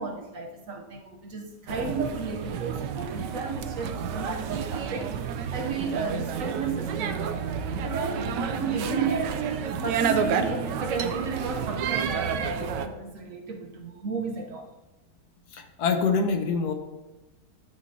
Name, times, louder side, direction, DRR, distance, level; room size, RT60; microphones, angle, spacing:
voice 1, 0.0-7.5 7.8-14.7, right 4 dB, 55° right, 1.1 m, -33 dB
sound 1, 1.7-12.9, right 7 dB, 85° right, 1.4 m, -30 dB
voice 2, 15.5-16.7, left 4 dB, 70° left, 1.4 m, -25 dB
11.5 x 9.6 x 2.8 m
omnidirectional pair, 1.9 m